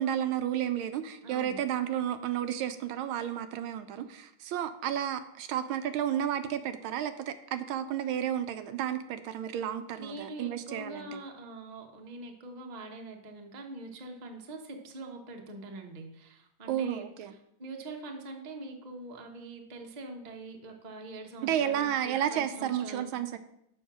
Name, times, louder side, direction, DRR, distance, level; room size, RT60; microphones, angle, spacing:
voice 1, 0.0-11.2 16.7-17.3 21.4-23.4, right 10 dB, 75° right, 10 dB, 1.4 m, -32 dB
voice 2, 1.2-1.6 9.9-17.1 17.6-23.1, right 2 dB, 30° right, 2 dB, 0.7 m, -44 dB
7.1 x 5.5 x 6.0 m, 0.78 s
omnidirectional pair, 2.3 m